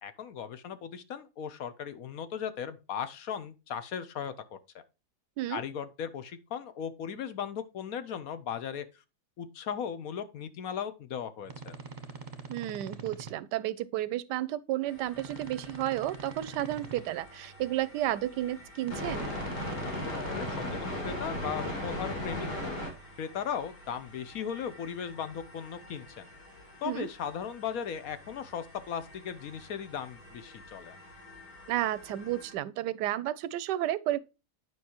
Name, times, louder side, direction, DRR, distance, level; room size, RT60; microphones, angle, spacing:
voice 1, 0.0-4.8 5.5-8.9 9.4-11.8 20.1-22.5 23.2-26.3 26.8-31.0, left 8 dB, 65° left, 1.1 m, -37 dB
sound 1, 11.4-13.3 15.1-17.0 18.8-20.7, right 4 dB, 35° right, 0.9 m, -44 dB
voice 2, 12.5-19.3 26.8-27.1 31.7-34.2, right 14 dB, 90° right, 1.2 m, -32 dB
sound 2, 14.9-32.5, left 1 dB, 80° left, 4.0 m, -41 dB
9.3 x 5.5 x 2.9 m
omnidirectional pair, 1.8 m